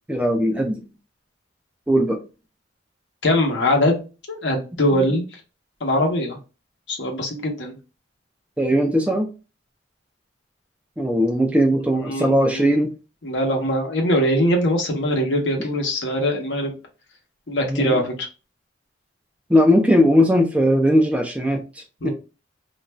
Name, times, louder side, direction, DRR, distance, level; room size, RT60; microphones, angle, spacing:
voice 1, 0.1-0.8 1.9-2.2 4.9-5.2 8.6-9.3 11.0-12.9 17.6-17.9 19.5-22.1, equal, 5° right, 0.3 m, -19 dB
voice 2, 3.2-5.2 5.8-6.4 6.9-7.7 12.1-12.8 13.2-16.7 17.5-18.1 22.0-22.1, left 1 dB, 70° left, 0.9 m, -22 dB
2.4 x 2.2 x 3.1 m
head